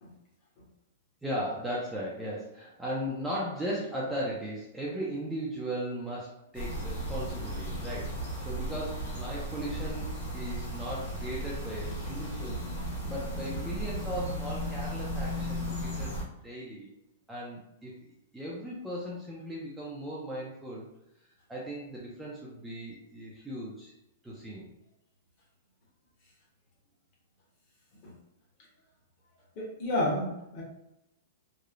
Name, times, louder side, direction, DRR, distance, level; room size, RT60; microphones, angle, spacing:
voice 1, 1.2-8.2 8.4-10.1 10.3-12.7 13.1-16.1 16.4-16.9 17.3-20.9 21.5-23.9 24.2-24.7, equal, 5° right, -6 dB, 0.4 m, -37 dB
sound 1, 6.5-16.2, equal, 55° left, 1.2 m, -35 dB
voice 2, 29.6-30.6, left 1 dB, 35° left, -3 dB, 0.8 m, -31 dB
2.9 x 2.0 x 2.4 m, 0.87 s
supercardioid pair, 170°, 0 cm